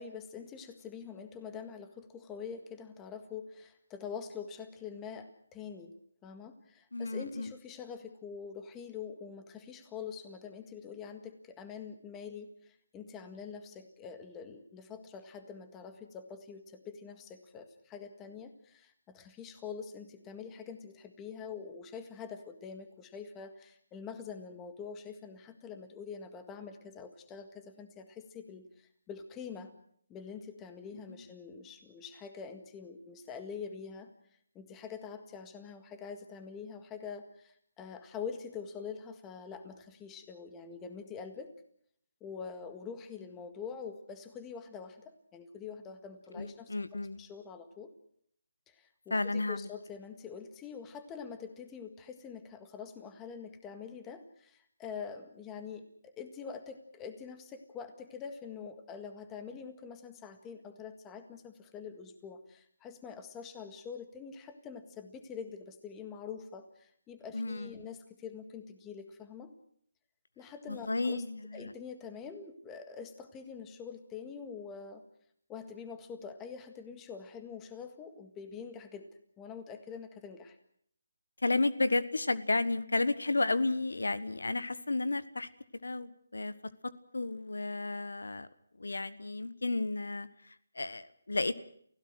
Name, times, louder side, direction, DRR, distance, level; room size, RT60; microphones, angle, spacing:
voice 1, 0.0-5.9 6.2-29.7 30.1-34.1 34.6-41.5 42.2-46.7 47.2-47.9 48.7-69.5 70.4-71.2 71.5-75.0 75.5-79.1 79.4-80.6, left 6 dB, 15° left, 8 dB, 1.8 m, -45 dB
voice 2, 6.9-7.5 31.1-31.2 46.3-47.2 49.1-49.7 67.3-67.9 70.7-71.7 81.4-85.5 85.8-86.5 87.1-88.5 88.8-91.6, left 2 dB, 85° left, 15 dB, 1.3 m, -32 dB
30.0 x 16.5 x 6.3 m, 0.65 s
figure-of-eight pair, 160°, 0 cm